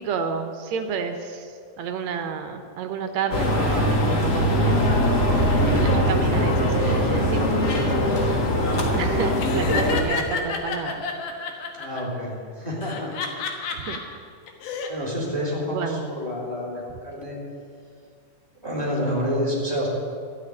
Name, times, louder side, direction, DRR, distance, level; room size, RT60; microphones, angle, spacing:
voice 1, 0.0-5.0 5.7-7.9 8.9-11.0 13.7-14.0 15.7-16.0, right 6 dB, 70° right, 6 dB, 1.8 m, -30 dB
sound 1, 3.3-10.0, left 1 dB, 40° left, 1.5 m, -21 dB
sound 2, 5.2-9.4, right 3 dB, 25° right, 0.3 m, -32 dB
Laughter, 9.4-12.0 12.8-14.0 14.5-14.9, left 4 dB, 70° left, 2.7 m, -29 dB
voice 2, 11.8-13.2 13.7-13.8 14.9-17.3 18.6-19.9, equal, 5° left, -2 dB, 3.1 m, -28 dB
12.5 x 8.6 x 9.7 m, 2.3 s
omnidirectional pair, 4.0 m